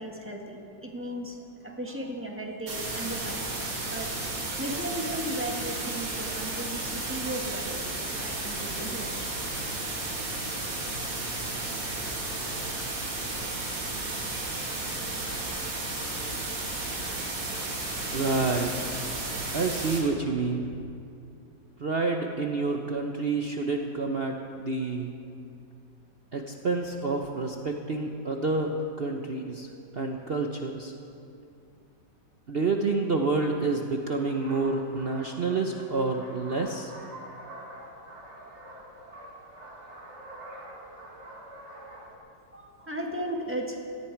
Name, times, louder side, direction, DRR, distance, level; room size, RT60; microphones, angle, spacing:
voice 1, 0.0-4.1 4.5-9.4 42.5-43.8, right 1 dB, 5° right, 0 dB, 1.4 m, -36 dB
sound 1, 2.7-20.0, right 2 dB, 80° right, 3.2 m, -33 dB
voice 2, 18.1-18.7 19.5-20.7 21.8-25.1 26.3-29.7 29.9-30.9 32.5-36.9, right 3 dB, 55° right, 3 dB, 0.6 m, -28 dB
sound 2, 34.1-42.2, right 1 dB, 40° right, 2.2 m, -46 dB
17.5 x 14.0 x 4.6 m, 2.5 s
omnidirectional pair, 2.0 m